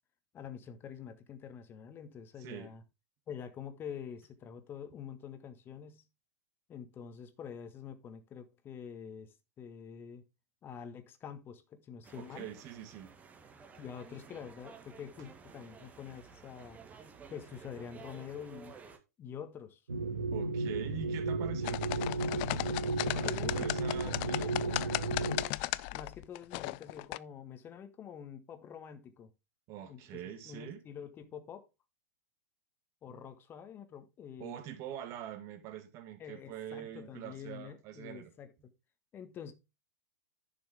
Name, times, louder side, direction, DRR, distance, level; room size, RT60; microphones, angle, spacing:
voice 1, 0.3-2.8 3.3-6.0 6.7-10.2 10.6-12.5 13.8-16.8 17.3-18.7 19.2-19.8 23.2-23.7 24.0-25.5 25.9-29.3 29.9-30.2 30.4-31.7 33.0-34.5 36.2-38.5 39.1-39.5, left 8 dB, 25° left, 1.6 m, -46 dB
voice 2, 2.4-2.7 12.1-13.1 20.3-21.9 23.0-24.5 29.7-30.8 33.1-33.2 34.4-38.3, right 10 dB, 35° right, 1.9 m, -44 dB
sound 1, 12.0-19.0, right 5 dB, 15° right, 1.5 m, -53 dB
sound 2, 19.9-25.4, right 3 dB, 80° right, 1.4 m, -34 dB
sound 3, 21.6-27.2, left 21 dB, 40° left, 0.4 m, -36 dB
10.5 x 6.1 x 3.5 m
figure-of-eight pair, 105°, 9 cm